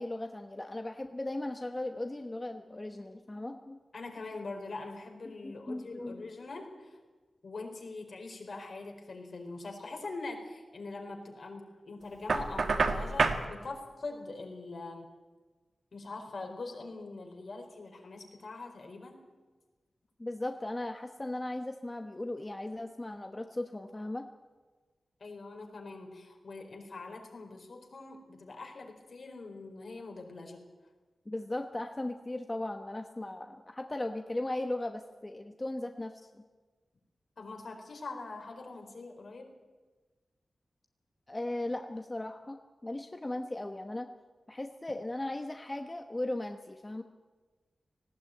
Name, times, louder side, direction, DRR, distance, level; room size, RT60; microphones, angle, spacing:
voice 1, 0.0-3.8 5.4-6.3 20.2-24.3 31.3-36.4 41.3-44.1 44.5-47.0, left 1 dB, 20° left, 5 dB, 1.1 m, -37 dB
voice 2, 3.9-7.0 7.4-15.1 15.9-19.2 25.2-30.6 37.4-39.5, left 3 dB, 60° left, 3 dB, 4.4 m, -43 dB
Knock, 12.3-13.5, right 4 dB, 70° right, 1.8 m, -28 dB
19.0 x 16.5 x 9.2 m, 1.3 s
wide cardioid pair, 115°, 0 cm